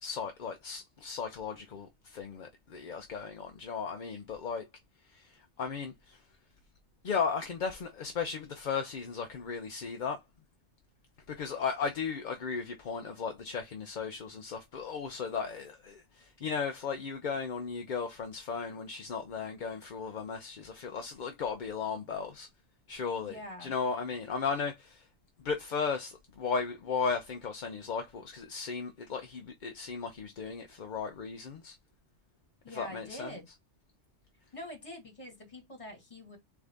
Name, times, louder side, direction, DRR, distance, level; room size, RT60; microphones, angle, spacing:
voice 1, 0.0-4.7 5.1-6.2 7.0-10.2 11.3-22.5 22.9-25.1 25.4-31.7 32.7-33.6, left 5 dB, 50° left, 0.7 m, -36 dB
voice 2, 23.2-23.7 32.6-33.5 34.5-36.4, left 1 dB, 30° left, 2.0 m, -45 dB
3.8 x 3.6 x 3.3 m
omnidirectional pair, 1.2 m